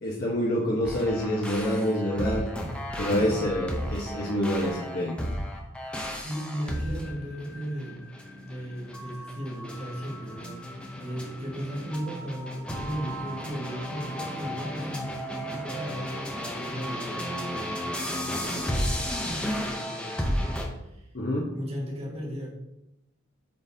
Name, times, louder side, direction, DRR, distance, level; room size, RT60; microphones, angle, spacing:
voice 1, 0.0-2.5 3.0-5.2 21.1-21.5, equal, 45° left, -6 dB, 1.0 m, -27 dB
sound 1, 0.8-20.6, equal, 5° left, 0.7 m, -34 dB
voice 2, 6.2-8.0 8.4-17.8 18.3-20.6 20.9-21.0 21.5-22.5, equal, 30° right, -3 dB, 1.5 m, -36 dB
8.7 x 3.9 x 2.7 m, 0.87 s
head